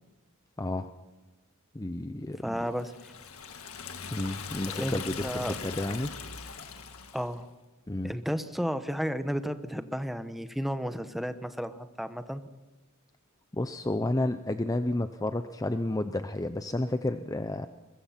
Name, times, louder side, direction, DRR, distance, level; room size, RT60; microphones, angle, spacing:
voice 1, 0.6-0.9 1.7-2.7 4.1-6.1 7.9-8.1 13.5-17.7, left 1 dB, 15° left, 9 dB, 0.6 m, -31 dB
voice 2, 2.4-3.1 4.7-5.6 7.1-7.5 8.0-12.4, equal, ahead, 9 dB, 1.0 m, -33 dB
Liquid, 2.7-7.4, left 6 dB, 85° left, 1.8 m, -40 dB
22.5 x 21.5 x 5.8 m, 1.1 s
head